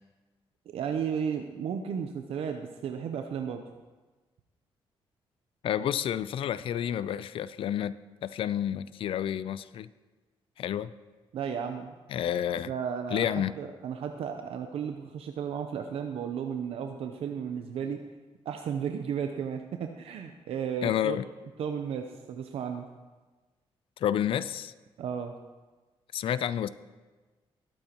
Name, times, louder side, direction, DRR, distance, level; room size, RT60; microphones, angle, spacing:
voice 1, 0.7-3.6 11.3-11.9 12.7-13.3 13.6-18.0 18.5-21.2 21.6-22.9 25.0-25.3, right 7 dB, 75° right, 5 dB, 0.7 m, -34 dB
voice 2, 5.6-7.9 8.2-9.9 10.6-10.9 12.1-12.7 13.1-13.5 20.8-21.2 24.0-24.7 26.1-26.7, left 10 dB, 65° left, 15 dB, 0.4 m, -30 dB
20.0 x 8.9 x 3.0 m, 1.3 s
cardioid pair, 95°, 10 cm